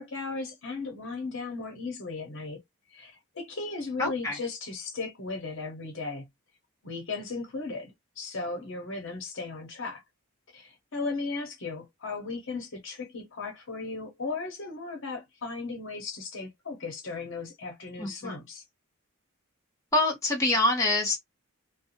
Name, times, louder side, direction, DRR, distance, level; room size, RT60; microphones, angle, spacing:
voice 1, 0.0-2.6 2.9-6.3 6.8-10.0 10.5-18.6, left 3 dB, 60° left, 0.9 m, -36 dB
voice 2, 4.0-4.4 18.0-18.4 19.9-21.2, left 2 dB, 15° left, 1.3 m, -25 dB
2.5 x 2.2 x 2.8 m
head